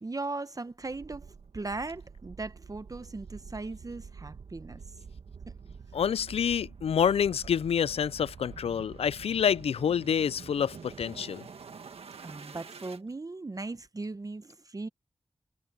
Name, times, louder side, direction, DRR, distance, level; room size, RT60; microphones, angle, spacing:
voice 1, 0.0-4.8 12.2-14.9, right 3 dB, 35° right, 0.8 m, -38 dB
sound 1, 0.8-13.0, right 5 dB, 85° right, 1.7 m, -47 dB
voice 2, 5.9-11.4, left 8 dB, 85° left, 0.4 m, -27 dB
cardioid pair, 45°, 10 cm